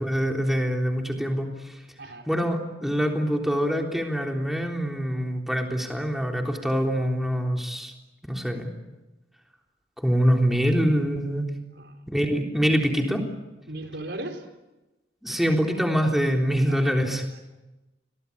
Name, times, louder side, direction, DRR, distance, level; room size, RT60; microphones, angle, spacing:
voice 1, 0.0-1.8 2.3-7.9 8.2-8.7 10.0-11.5 12.1-13.2 15.2-17.3, equal, ahead, 1 dB, 3.6 m, -24 dB
voice 2, 13.7-14.5 15.3-15.4 16.6-17.0, right 1 dB, 75° right, 5 dB, 4.0 m, -37 dB
29.5 x 23.0 x 8.6 m, 1.1 s
head